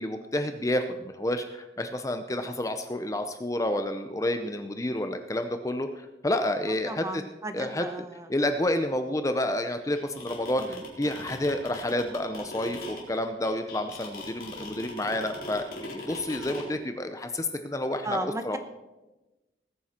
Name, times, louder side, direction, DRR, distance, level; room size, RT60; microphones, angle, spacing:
voice 1, 0.0-7.2 7.5-7.8 8.3-18.6, left 1 dB, 20° left, 7 dB, 0.6 m, -29 dB
voice 2, 6.9-8.3 10.6-10.7 18.0-18.6, right 1 dB, 15° right, 9 dB, 0.9 m, -35 dB
sound 1, 9.9-16.7, left 2 dB, 55° left, 4.3 m, -39 dB
20.0 x 9.4 x 4.3 m, 1.1 s
head